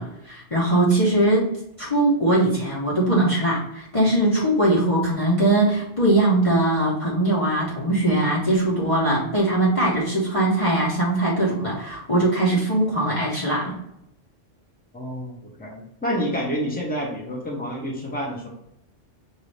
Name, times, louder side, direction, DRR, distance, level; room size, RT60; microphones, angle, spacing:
voice 1, 0.0-1.5 1.8-13.7, right 1 dB, 30° left, -6 dB, 1.0 m, -21 dB
voice 2, 14.9-18.5, equal, 10° left, -2 dB, 1.1 m, -28 dB
5.7 x 2.8 x 3.2 m, 0.80 s
omnidirectional pair, 1.2 m